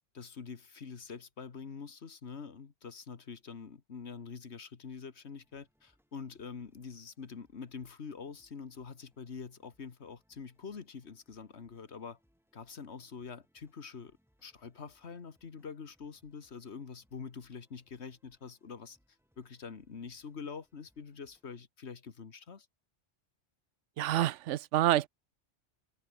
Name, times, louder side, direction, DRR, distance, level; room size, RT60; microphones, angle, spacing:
voice 1, 0.1-12.2 12.5-19.0 19.4-22.7, left 5 dB, 65° left, 1.8 m, -45 dB
sound 1, 5.1-21.6, equal, ahead, 7.4 m, -75 dB
voice 2, 24.0-25.1, right 13 dB, 80° right, 0.9 m, -27 dB
omnidirectional pair, 1.2 m